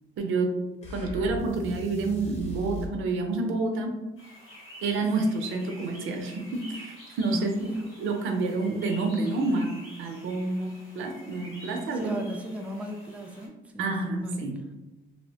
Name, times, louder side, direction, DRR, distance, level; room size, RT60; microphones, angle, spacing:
voice 1, 0.2-0.5 0.9-3.9 4.8-7.7 8.0-9.7 10.0-12.2 13.8-14.7, right 3 dB, 85° right, 3 dB, 0.5 m, -28 dB
sound 1, 0.8-3.0, right 1 dB, 35° left, 0.8 m, -37 dB
sound 2, 4.2-13.5, equal, 75° left, 1.2 m, -49 dB
voice 2, 7.3-7.9 11.9-14.5, right 1 dB, 5° right, 2 dB, 0.4 m, -36 dB
2.9 x 2.0 x 2.8 m, 1.0 s
cardioid pair, 90°, 20 cm